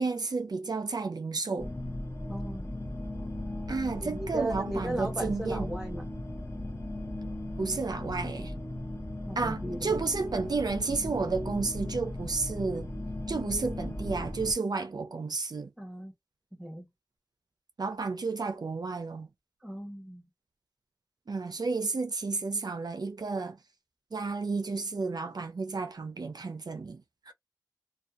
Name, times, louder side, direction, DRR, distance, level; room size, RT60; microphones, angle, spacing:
voice 1, 0.0-1.7 3.7-5.7 7.6-8.5 9.4-12.9 13.3-15.7 17.8-19.3 21.3-23.6 24.1-27.3, right 4 dB, 65° right, 0.4 m, -32 dB
sound 1, 1.6-14.5, left 1 dB, 35° left, 0.7 m, -37 dB
voice 2, 2.3-2.7 4.0-6.0 9.3-9.9 15.8-16.1 16.5-16.9 19.6-20.3, right 1 dB, 10° right, 0.9 m, -37 dB
2.6 x 2.2 x 2.4 m
wide cardioid pair, 60°, 7 cm